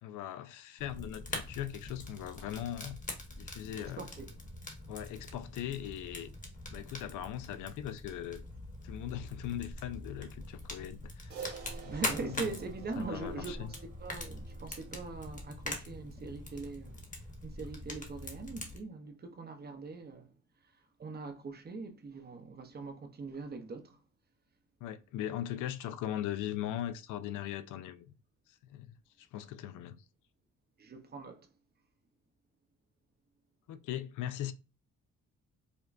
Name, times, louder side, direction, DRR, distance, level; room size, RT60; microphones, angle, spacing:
voice 1, 0.0-3.0 3.4-4.1 4.9-6.3 6.7-8.4 8.8-11.4 11.8-12.4 13.0-13.7 24.8-28.1 28.5-30.0 33.7-34.5, left 11 dB, 80° left, 0.5 m, -40 dB
Fire, 0.8-18.8, left 1 dB, 25° left, 1.1 m, -43 dB
voice 2, 3.8-4.3 11.9-17.0 17.4-20.3 21.0-24.0 30.8-31.5, right 3 dB, 35° right, 0.7 m, -42 dB
Crash cymbal, 11.3-15.9, right 7 dB, 75° right, 1.2 m, -49 dB
5.0 x 2.2 x 2.5 m
cardioid pair, 90°, 30 cm